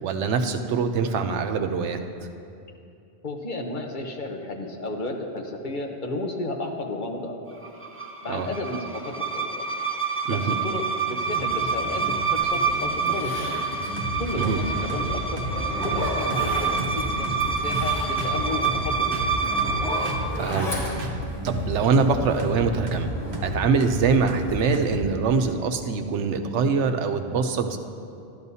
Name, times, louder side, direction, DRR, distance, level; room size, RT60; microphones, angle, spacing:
voice 1, 0.0-2.0 8.3-8.5 10.3-10.5 14.3-14.6 20.4-20.7 21.4-23.1 23.4-27.8, right 5 dB, 90° right, 7 dB, 1.0 m, -23 dB
voice 2, 3.2-7.4 8.2-8.9 9.3-9.5 10.3-13.6 14.2-15.4 15.8-19.3, left 2 dB, 45° left, 2 dB, 1.0 m, -33 dB
sound 1, 7.6-20.3, right 5 dB, 20° right, 0.3 m, -27 dB
sound 2, 11.1-25.1, right 1 dB, 65° right, 1.1 m, -32 dB
Zipper (clothing), 12.4-12.5 13.1-15.0 15.4-17.0 17.4-22.6 22.9-24.2 24.5-25.0 25.3-25.4, left 1 dB, 80° left, 2.3 m, -35 dB
12.5 x 12.0 x 2.7 m, 2.6 s
omnidirectional pair, 1.2 m